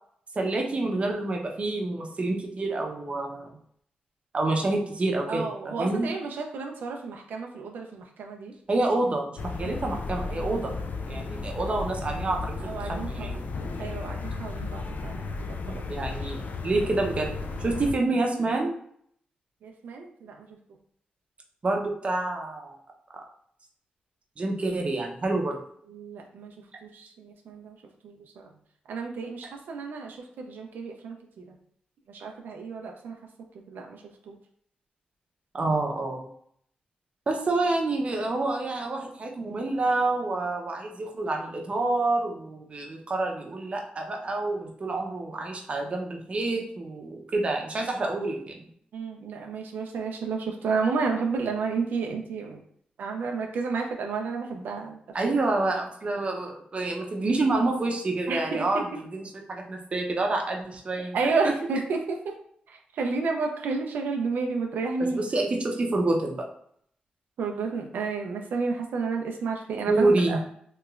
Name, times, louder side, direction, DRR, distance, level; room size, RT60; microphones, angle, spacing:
voice 1, 0.3-3.5 4.3-6.1 8.7-10.7 11.1-13.4 15.7-17.3 17.6-18.7 21.6-22.8 24.4-25.6 35.5-36.3 37.3-48.7 55.1-58.8 59.1-61.2 61.4-61.5 65.1-66.4 69.9-70.4, right 2 dB, 40° right, 1 dB, 0.6 m, -28 dB
voice 2, 5.3-8.5 9.6-9.8 12.6-13.3 13.8-15.9 19.6-20.5 25.9-26.5 26.8-27.8 28.0-28.5 28.9-31.6 32.1-33.2 33.7-34.4 48.9-52.6 53.0-55.3 58.3-59.0 61.1-62.4 62.7-65.2 67.4-70.5, right 4 dB, 85° right, 2 dB, 0.4 m, -31 dB
sound 1, 9.4-17.9, left 3 dB, 65° left, 0.4 m, -34 dB
3.0 x 2.9 x 2.4 m, 0.65 s
cardioid pair, 90°, 3 cm